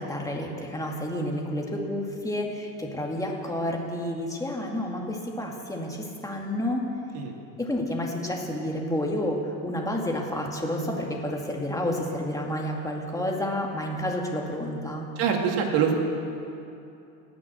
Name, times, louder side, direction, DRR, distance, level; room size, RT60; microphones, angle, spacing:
voice 1, 0.0-6.9 7.6-15.1, left 1 dB, 10° left, 0 dB, 2.1 m, -30 dB
voice 2, 15.2-15.9, right 7 dB, 60° right, 2 dB, 2.3 m, -24 dB
18.0 x 6.2 x 7.8 m, 2.7 s
supercardioid pair, 115°, 42 cm